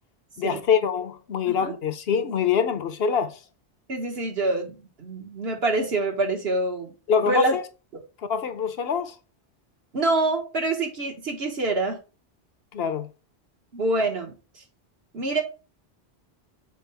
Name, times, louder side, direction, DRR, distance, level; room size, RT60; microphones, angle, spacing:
voice 1, 0.4-3.4 7.1-7.6 8.3-9.1 12.7-13.1, left 7 dB, 65° left, 1.1 m, -24 dB
voice 2, 1.5-1.8 3.9-6.9 7.2-7.6 9.9-12.0 13.7-14.6 15.1-15.4, right 2 dB, 65° right, 1.8 m, -26 dB
7.5 x 4.7 x 3.4 m
omnidirectional pair, 1.1 m